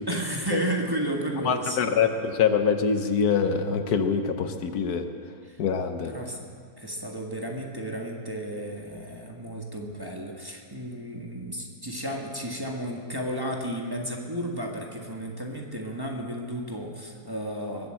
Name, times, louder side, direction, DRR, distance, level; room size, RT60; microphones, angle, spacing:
voice 1, 0.0-2.2 5.4-5.6 6.0-6.5 6.8-17.9, right 1 dB, 15° right, 0 dB, 1.5 m, -33 dB
voice 2, 1.4-5.1 5.6-6.1, left 6 dB, 75° left, 8 dB, 1.4 m, -24 dB
21.5 x 8.3 x 7.6 m, 2.1 s
omnidirectional pair, 1.7 m